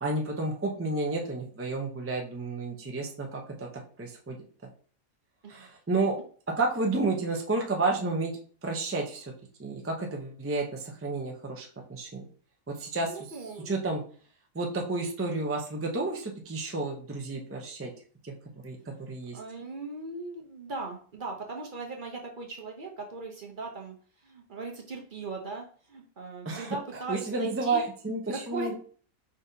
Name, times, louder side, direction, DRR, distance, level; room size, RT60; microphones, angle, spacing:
voice 1, 0.0-3.7 4.0-4.4 5.5-6.1 6.6-8.3 8.6-9.2 9.6-12.2 12.8-13.1 13.7-14.0 14.5-17.9 18.2-18.3 18.6-18.8 19.1-19.4 26.4-28.7, right 3 dB, 20° right, 1 dB, 0.3 m, -31 dB
voice 2, 13.1-13.8 19.3-24.0 24.2-27.8 28.3-28.7, right 3 dB, 45° right, 1 dB, 0.7 m, -39 dB
4.9 x 4.0 x 2.7 m, 0.43 s
omnidirectional pair, 1.5 m